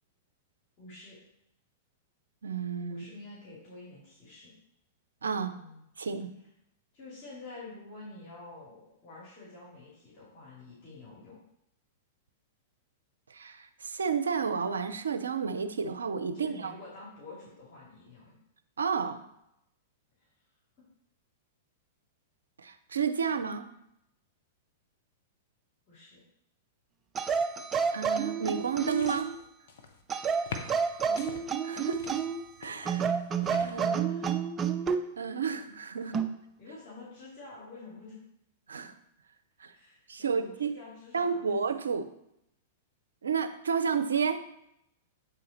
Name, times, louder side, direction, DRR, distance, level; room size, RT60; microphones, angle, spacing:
voice 1, 0.8-1.2 2.9-4.5 5.4-5.8 6.9-11.4 16.3-18.4 20.2-20.3 25.9-26.2 31.0-31.4 34.0-34.3 36.0-36.1 36.6-38.2 39.7-41.5, left 3 dB, 45° left, -6 dB, 2.9 m, -48 dB
voice 2, 2.4-3.1 5.2-5.5 6.0-6.3 13.3-16.7 18.8-19.2 22.6-23.7 27.9-29.3 31.6-32.0 32.6-33.1 33.6-34.1 35.2-36.2 38.7-38.9 39.6-39.7 40.1-40.7 41.1-42.1 43.2-44.4, right 6 dB, 80° right, 9 dB, 0.6 m, -31 dB
sound 1, 27.1-29.4 30.1-32.5 32.9-35.1 36.1-36.4, right 6 dB, 25° right, 0.5 m, -30 dB
sound 2, 28.6-30.0 30.5-31.4 31.9-33.9, left 5 dB, 65° left, 0.9 m, -45 dB
8.3 x 3.8 x 4.3 m, 0.79 s
hypercardioid pair, 105°, 0 cm